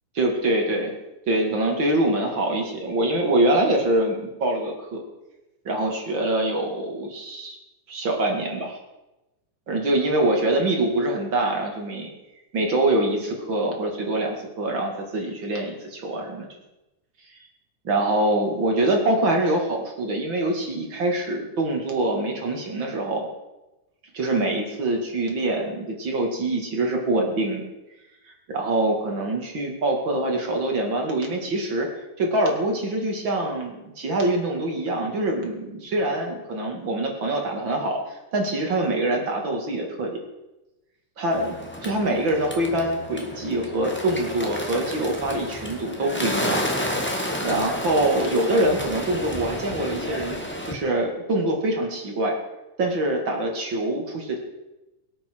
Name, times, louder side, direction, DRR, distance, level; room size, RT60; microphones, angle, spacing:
voice 1, 0.1-1.0 1.3-5.0 5.6-7.6 7.9-8.8 9.7-12.1 12.5-16.5 17.8-23.3 24.1-27.6 28.5-40.1 41.2-41.5 41.8-46.6 47.4-50.4 50.6-52.3 52.8-54.4, right 1 dB, 40° right, 1 dB, 2.6 m, -24 dB
Bird, 41.3-50.7, left 1 dB, 5° left, 0.8 m, -31 dB
23.0 x 8.5 x 4.6 m, 1.0 s
omnidirectional pair, 3.5 m